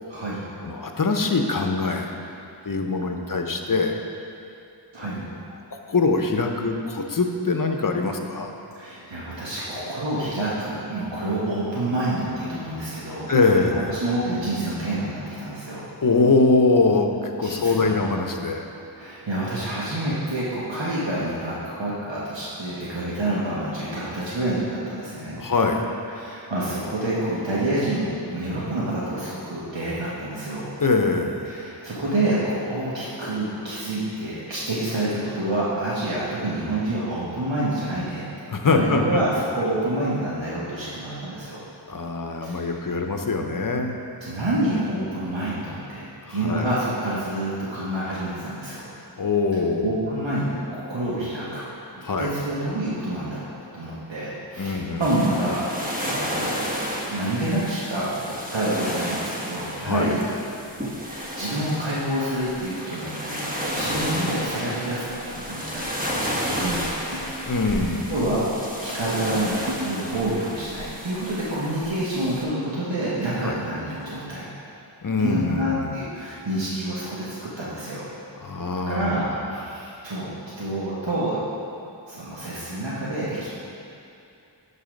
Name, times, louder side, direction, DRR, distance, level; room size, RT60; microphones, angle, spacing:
voice 1, 0.1-0.4 4.9-5.2 8.8-15.8 17.4-18.0 18.9-25.4 26.1-30.7 31.5-38.2 38.7-41.6 42.4-42.6 44.2-48.9 49.8-51.6 52.2-55.7 56.0-56.7 57.0-60.2 61.0-65.8 66.1-67.3 67.7-68.5 68.8-74.4 75.2-78.1 78.9-80.3 80.6-81.4 82.1-83.5, right 1 dB, 85° right, -8 dB, 1.3 m, -28 dB
voice 2, 0.6-2.2 2.6-4.0 5.0-5.4 5.9-8.5 13.3-13.9 16.0-18.7 25.4-25.9 30.8-31.7 38.5-39.2 41.9-44.0 46.2-46.7 49.2-50.0 52.0-52.3 54.6-55.1 59.8-60.1 67.4-68.2 73.4-73.6 75.0-76.0 78.4-79.2 79.6-79.7, left 3 dB, 50° left, 4 dB, 0.8 m, -23 dB
sound 1, 55.0-72.4, equal, 20° right, 1.2 m, -32 dB
sound 2, 67.1-67.9 69.6-70.3 70.7-74.4, equal, 50° right, 0.8 m, -40 dB
11.0 x 4.1 x 5.2 m, 2.6 s
wide cardioid pair, 55°, 43 cm